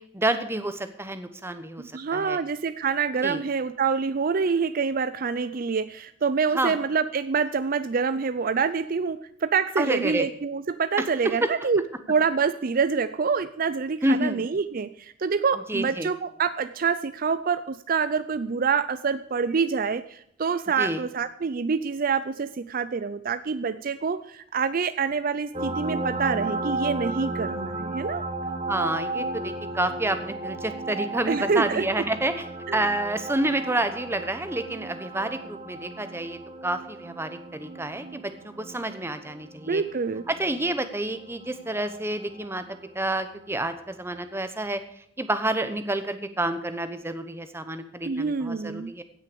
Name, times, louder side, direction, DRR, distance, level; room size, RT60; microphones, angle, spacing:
voice 1, 0.1-1.8 2.1-2.4 3.2-3.4 6.5-6.7 9.8-10.3 11.0-11.5 14.0-14.5 15.7-16.1 20.8-21.0 28.7-32.5 32.7-39.8 40.3-42.6 42.9-44.8 45.2-49.0, right 1 dB, 15° right, 10 dB, 1.0 m, -29 dB
voice 2, 1.8-11.8 12.1-28.2 31.3-31.9 32.7-32.8 39.7-40.2 48.0-48.9, right 5 dB, 50° right, 13 dB, 0.5 m, -26 dB
sound 1, 25.5-42.8 44.3-44.4, right 2 dB, 30° right, 1.6 m, -35 dB
17.0 x 6.6 x 6.8 m, 0.71 s
head